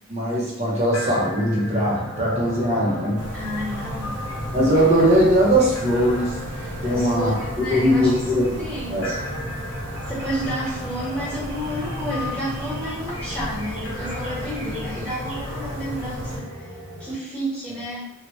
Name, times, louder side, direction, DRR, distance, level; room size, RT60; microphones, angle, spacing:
voice 1, 0.1-3.3 4.5-6.4 6.8-7.4 7.7-8.5 8.9-9.1, equal, 30° right, -4 dB, 0.8 m, -20 dB
sound 1, 0.9-17.1, equal, 70° left, 1.0 m, -35 dB
sound 2, 3.2-16.4, equal, 80° right, 0.9 m, -35 dB
voice 2, 3.3-4.3 6.8-9.2 10.1-16.7 17.0-18.0, equal, 5° left, -9 dB, 1.3 m, -31 dB
3.0 x 2.3 x 3.0 m, 0.81 s
head